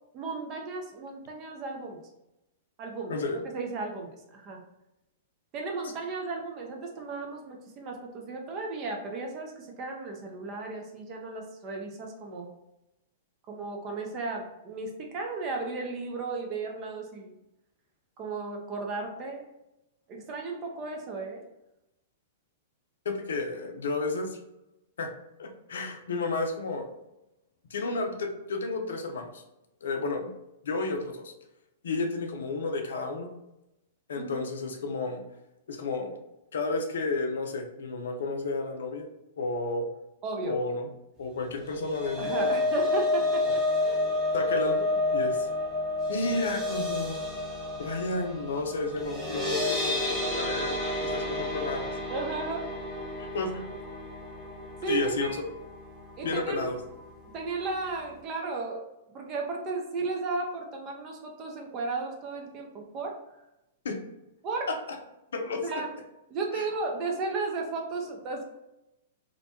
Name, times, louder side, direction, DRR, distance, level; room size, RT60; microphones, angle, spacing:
voice 1, 0.1-2.0 2.8-3.2 3.5-4.6 5.5-12.5 13.5-17.4 18.2-19.5 20.1-21.4 34.2-34.4 40.2-40.6 42.2-44.0 52.1-52.6 54.8-55.4 56.2-56.7 57.3-58.9 59.1-63.2 64.4-64.7 65.5-65.9 66.3-68.4, right 3 dB, 35° right, 1 dB, 0.5 m, -34 dB
voice 2, 3.1-3.4 23.1-24.4 25.0-26.9 27.7-29.4 29.8-30.3 30.6-31.3 31.8-33.3 34.1-35.2 35.7-36.2 36.5-39.1 39.4-39.9 40.4-40.9 41.2-42.5 43.4-43.5 44.3-45.5 46.1-47.2 47.8-51.9 53.2-53.7 54.9-55.4 56.2-56.8 63.8-64.0 64.7-65.0 65.3-65.8 66.5-66.6, left 3 dB, 70° left, 5 dB, 0.4 m, -32 dB
sound 1, 41.6-55.9 56.2-56.5 56.8-56.9, left 2 dB, 5° right, 0.9 m, -30 dB
2.5 x 2.1 x 2.7 m, 0.90 s
figure-of-eight pair, 105°, 0 cm